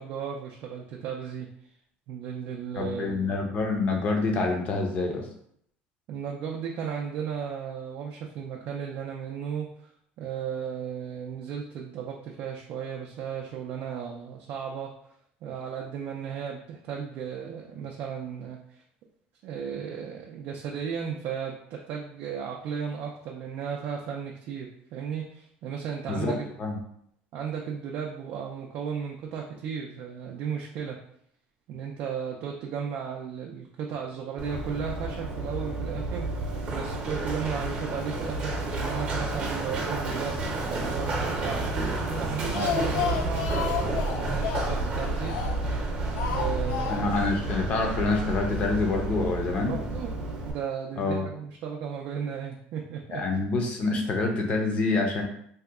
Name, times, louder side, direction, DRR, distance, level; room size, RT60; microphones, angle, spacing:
voice 1, 0.0-1.5 2.1-3.4 6.1-9.7 10.2-14.9 15.4-18.8 19.4-26.5 27.3-31.0 31.7-41.7 42.2-45.4 46.3-47.3 49.7-50.1 50.4-53.2, right 7 dB, 50° right, 0 dB, 0.4 m, -35 dB
voice 2, 2.8-5.3 26.1-26.8 46.9-49.8 51.0-51.3 53.1-55.2, left 3 dB, 35° left, 2 dB, 0.6 m, -27 dB
Run, 34.4-50.5, right 2 dB, 35° right, 0.8 m, -30 dB
Speech, 42.2-45.7 46.2-47.3 47.6-47.7 48.0-48.1, left 8 dB, 85° left, 0.3 m, -32 dB
2.7 x 2.2 x 3.5 m, 0.69 s
cardioid pair, 165°, 4 cm